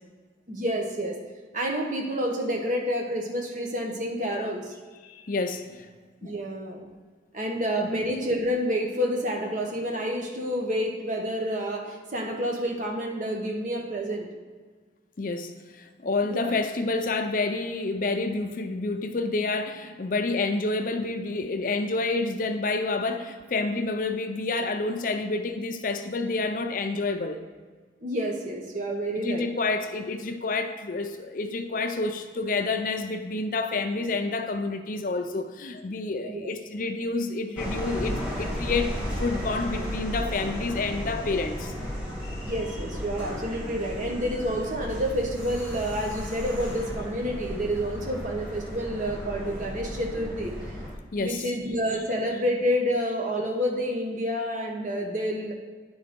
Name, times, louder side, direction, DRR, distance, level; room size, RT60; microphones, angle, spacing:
voice 1, 0.5-1.2 1.5-4.8 6.2-6.9 7.3-14.3 16.2-16.5 28.0-29.4 36.2-36.5 42.4-50.5 51.2-55.5, equal, 45° right, 1 dB, 1.2 m, -29 dB
voice 2, 5.0-5.9 6.2-6.3 15.2-27.5 29.2-41.7 51.1-51.5, left 3 dB, 50° left, 7 dB, 0.5 m, -29 dB
sound 1, 37.6-50.9, equal, 5° right, 1.8 m, -34 dB
9.6 x 3.9 x 5.1 m, 1.4 s
head